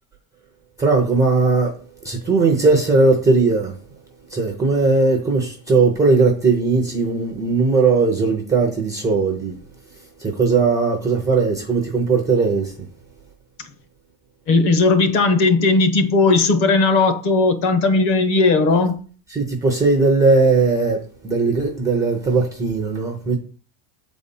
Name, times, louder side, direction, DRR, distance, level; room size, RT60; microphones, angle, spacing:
voice 1, 0.8-1.7 2.0-3.7 4.3-9.5 10.2-12.7 19.3-23.4, right 3 dB, 10° right, 0.4 m, -18 dB
voice 2, 14.5-19.0, left 3 dB, 45° left, 1.2 m, -17 dB
8.2 x 4.2 x 5.3 m
cardioid pair, 170°, 47 cm